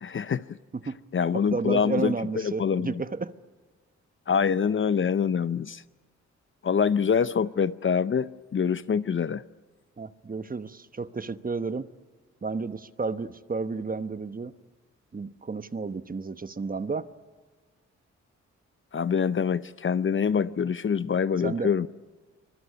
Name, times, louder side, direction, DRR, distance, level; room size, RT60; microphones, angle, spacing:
voice 1, 0.0-0.4 1.1-2.1 2.4-3.0 4.3-5.8 6.6-9.4 18.9-21.9, left 6 dB, 40° left, 16 dB, 0.7 m, -25 dB
voice 2, 1.5-3.3 10.0-11.9 12.4-14.5 15.1-17.1 21.4-21.9, right 4 dB, 30° right, 12 dB, 1.1 m, -32 dB
25.0 x 20.5 x 9.5 m, 1.3 s
supercardioid pair, 55°, 29 cm